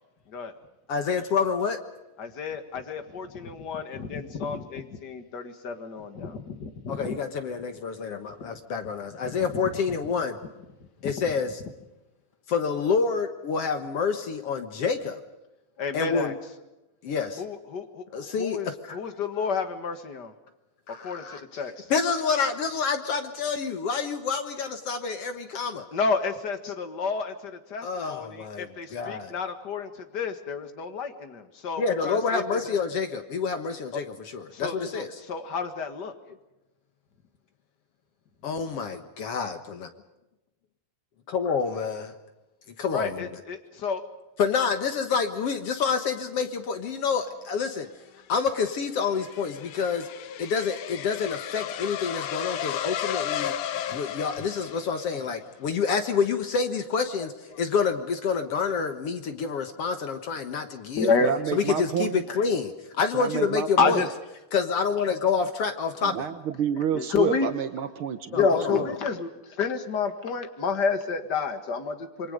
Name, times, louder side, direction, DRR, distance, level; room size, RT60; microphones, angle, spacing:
voice 1, 0.9-1.8 6.9-10.4 11.0-11.6 12.5-15.2 15.9-16.4 17.0-17.4 18.1-19.0 20.9-21.6 21.9-25.9 27.8-29.3 31.8-35.1 38.4-39.9 41.3-42.1 42.8-43.4 44.4-47.9 48.3-50.1 50.4-53.5 53.9-61.1 61.5-64.0 64.5-66.3 68.3-68.9, left 5 dB, 55° left, 8 dB, 1.9 m, -28 dB
voice 2, 2.2-7.2 9.2-9.3 11.0-11.1 15.8-16.3 17.4-20.3 21.0-21.7 25.9-32.7 33.9-34.0 34.5-36.1 42.9-44.0 53.9-54.0 56.3-56.4 57.5-57.6 61.0-61.3 63.8-64.1 66.9-67.5 68.4-72.3, left 5 dB, 40° left, 8 dB, 1.8 m, -30 dB
sound 1, 48.2-55.3, left 10 dB, 75° left, 2.5 m, -34 dB
voice 3, 61.0-62.2 63.1-64.0 66.0-68.8, right 8 dB, 80° right, 9 dB, 1.2 m, -29 dB
27.5 x 23.5 x 5.2 m, 1.0 s
omnidirectional pair, 3.8 m